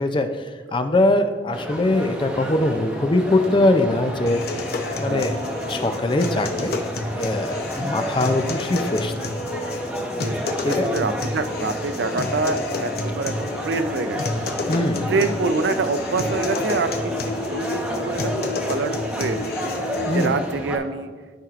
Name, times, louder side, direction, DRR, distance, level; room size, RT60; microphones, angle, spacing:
voice 1, 0.0-4.4 5.0-5.4 5.7-9.3 10.6-10.9 14.7-15.1 20.1-20.3, left 2 dB, 30° left, 7 dB, 0.4 m, -22 dB
sound 1, 1.5-20.8, equal, 5° right, 0.7 m, -31 dB
sound 2, 4.3-20.3, left 2 dB, 60° left, 0.7 m, -30 dB
voice 2, 10.2-14.4 15.1-19.5 20.1-21.1, right 3 dB, 80° right, 10 dB, 0.5 m, -26 dB
13.0 x 4.5 x 2.5 m, 1.5 s
head